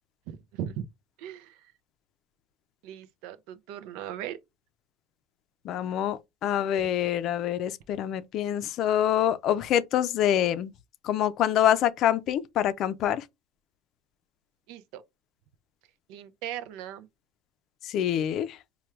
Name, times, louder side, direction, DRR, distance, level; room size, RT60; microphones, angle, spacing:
voice 1, 0.3-0.9 1.2-1.6 2.8-4.4 14.7-15.0 16.1-17.1, right 10 dB, 75° right, 0.4 m, -38 dB
voice 2, 5.6-10.7 11.0-13.2 17.8-18.6, left 10 dB, 60° left, 0.4 m, -26 dB
4.5 x 2.2 x 3.1 m
hypercardioid pair, 80°, 0 cm